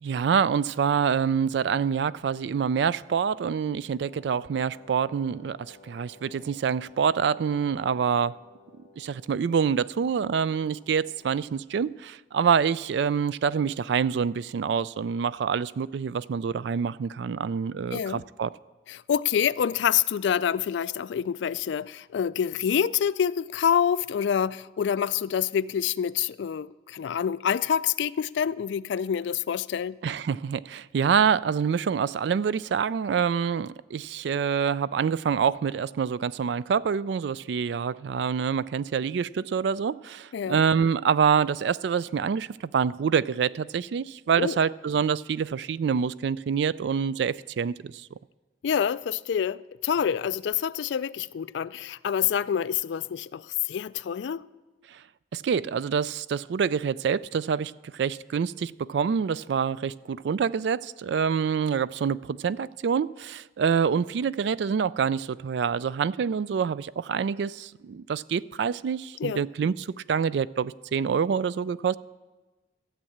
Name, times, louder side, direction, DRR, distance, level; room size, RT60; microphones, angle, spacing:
voice 1, 0.0-8.4 9.0-18.5 30.0-47.9 54.9-55.0 55.3-72.0, right 6 dB, 65° right, 0.3 m, -26 dB
Wind instrument woodwind instrument, 4.0-11.6, left 3 dB, 30° left, 1.9 m, -54 dB
voice 2, 17.9-18.2 18.9-30.0 40.3-40.6 44.4-44.6 48.6-54.4 69.2-69.4, left 8 dB, 70° left, 0.3 m, -27 dB
13.5 x 7.5 x 8.6 m
head